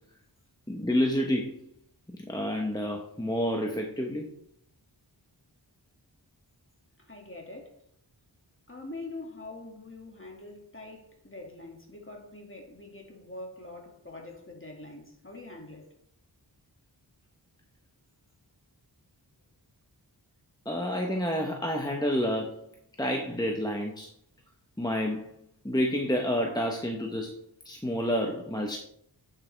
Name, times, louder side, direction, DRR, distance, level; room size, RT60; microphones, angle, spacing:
voice 1, 0.7-1.6 2.3-4.3 20.6-22.5 23.0-24.1 24.8-25.3 25.6-27.3 27.6-28.8, equal, 10° left, 1.1 m, -29 dB
voice 2, 7.0-7.8 8.7-15.9, left 2 dB, 30° left, 2.2 m, -44 dB
8.7 x 7.1 x 3.4 m
wide cardioid pair, 45°, 44 cm